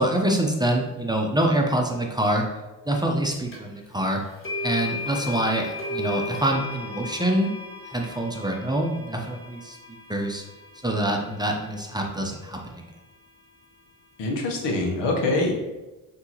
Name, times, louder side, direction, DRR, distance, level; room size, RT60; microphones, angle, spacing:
voice 1, 0.0-2.5 2.9-4.2 4.6-7.5 7.9-9.8 10.1-10.4 10.8-12.9, right 1 dB, 10° right, 1 dB, 0.7 m, -25 dB
sound 1, 3.5-3.6 4.4-12.5, left 2 dB, 30° left, 1.5 m, -36 dB
voice 2, 14.2-15.5, left 2 dB, 75° left, 1 dB, 1.1 m, -24 dB
6.0 x 2.8 x 2.9 m, 1.1 s
supercardioid pair, 65°, 42 cm